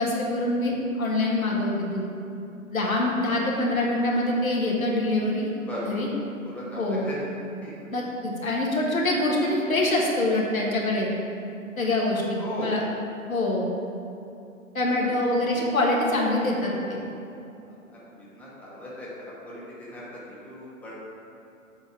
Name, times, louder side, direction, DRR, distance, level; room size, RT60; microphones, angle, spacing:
voice 1, 0.0-2.0 2.7-5.5 5.8-6.1 6.8-7.0 7.9-11.1 11.8-12.8 13.3-13.7 14.7-17.0, left 2 dB, 85° left, -2 dB, 1.6 m, -25 dB
voice 2, 5.7-6.0 6.4-7.2 7.6-7.7 9.2-9.3 12.4-12.7 17.6-20.9, left 1 dB, 5° left, -7 dB, 1.2 m, -38 dB
7.8 x 4.1 x 5.7 m, 2.7 s
figure-of-eight pair, 120°, 40 cm